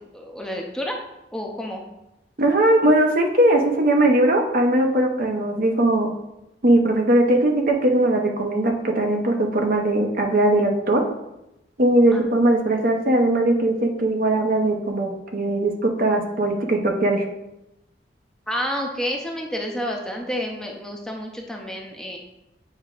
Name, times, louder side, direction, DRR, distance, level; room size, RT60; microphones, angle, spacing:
voice 1, 0.1-1.0 1.3-1.8 12.1-12.2 18.5-22.2, equal, 5° left, 0 dB, 0.6 m, -29 dB
voice 2, 2.4-6.1 6.6-11.0 11.8-17.2, right 1 dB, 50° right, 2 dB, 0.8 m, -19 dB
8.6 x 4.9 x 2.5 m, 0.90 s
head